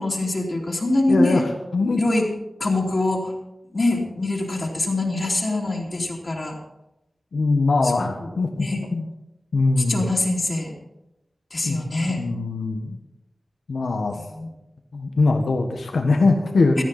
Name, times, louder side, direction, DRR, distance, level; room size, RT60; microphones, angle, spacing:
voice 1, 0.0-1.4 2.0-2.3 2.6-3.3 3.7-6.6 8.0-8.1 8.5-8.8 9.9-10.7 11.5-12.2 14.1-14.5 16.8-16.9, left 2 dB, 45° left, -3 dB, 3.0 m, -24 dB
voice 2, 1.1-2.0 7.3-9.0 9.5-10.0 11.6-11.8 12.2-13.0 13.7-14.2 14.9-16.8, left 3 dB, 90° left, 3 dB, 1.5 m, -22 dB
17.0 x 13.0 x 4.2 m, 0.93 s
wide cardioid pair, 85°, 0 cm